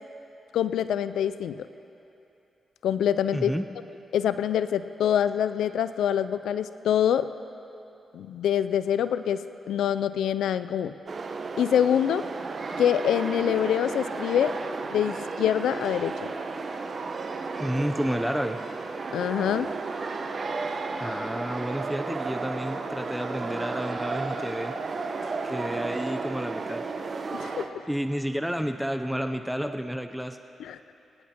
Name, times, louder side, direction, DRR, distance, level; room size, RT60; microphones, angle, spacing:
voice 1, 0.5-1.7 2.8-3.5 4.1-7.3 8.1-9.4 9.7-11.0 11.6-12.2 12.8-14.5 14.9-16.1 19.1-19.7 27.3-27.7 30.6-30.8, left 9 dB, 80° left, 13 dB, 0.3 m, -25 dB
voice 2, 3.3-3.6 17.6-18.6 21.0-24.7 25.4-26.8 27.9-30.4, equal, ahead, 7 dB, 0.5 m, -30 dB
sound 1, 11.1-27.6, right 4 dB, 50° right, 0.9 m, -33 dB
24.0 x 10.0 x 2.9 m, 2.9 s
supercardioid pair, 50°, 0 cm